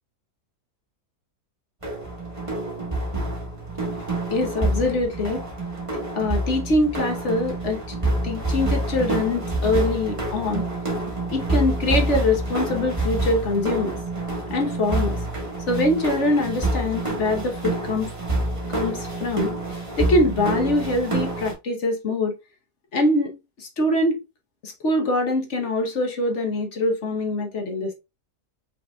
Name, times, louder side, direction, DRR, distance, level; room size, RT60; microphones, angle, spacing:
sound 1, 1.8-21.5, right 2 dB, 20° right, 1.4 m, -27 dB
voice 1, 4.3-5.4 6.1-8.0 8.2-10.6 11.3-14.0 14.5-15.2 15.7-18.1 18.7-19.5 20.0-22.4 22.9-24.2 24.6-27.9, left 2 dB, 50° left, 1.2 m, -23 dB
5.3 x 3.8 x 2.3 m
omnidirectional pair, 1.8 m